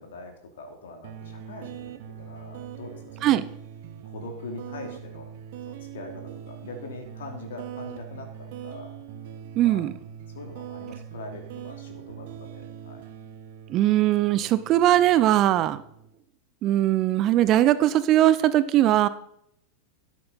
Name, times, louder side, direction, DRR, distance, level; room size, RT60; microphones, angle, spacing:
voice 1, 0.0-3.4 4.0-5.3 5.7-9.0 9.2-9.3 9.6-9.9 10.3-13.0, left 2 dB, 60° left, 4 dB, 3.0 m, -42 dB
sound 1, 1.0-16.1, right 9 dB, 50° right, 1.2 m, -42 dB
voice 2, 9.6-9.9 13.7-15.8 16.6-19.1, right 13 dB, 35° right, 15 dB, 0.6 m, -20 dB
13.0 x 10.5 x 4.1 m, 0.73 s
figure-of-eight pair, 90°, 0 cm